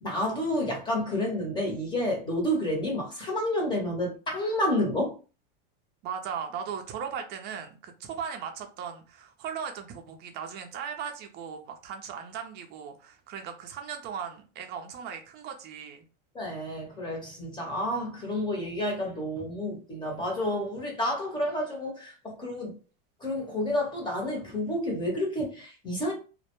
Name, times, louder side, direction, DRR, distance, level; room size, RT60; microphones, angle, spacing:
voice 1, 0.0-5.1 16.3-22.7 23.2-26.1, left 1 dB, 15° left, 0.8 m, -30 dB
voice 2, 6.0-16.0, right 7 dB, 35° right, 0.5 m, -38 dB
2.1 x 2.1 x 2.9 m
supercardioid pair, 145°, 29 cm